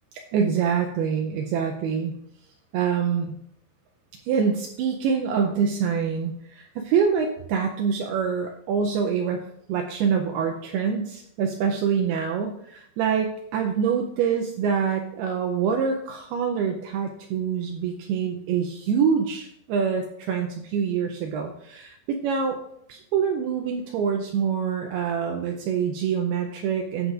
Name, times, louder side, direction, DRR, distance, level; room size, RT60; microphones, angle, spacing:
voice 1, 0.1-2.1 2.7-3.4 4.2-9.4 9.7-22.6 22.9-27.1, right 6 dB, 85° right, 3 dB, 2.3 m, -25 dB
16.0 x 6.5 x 2.5 m, 0.72 s
omnidirectional pair, 5.1 m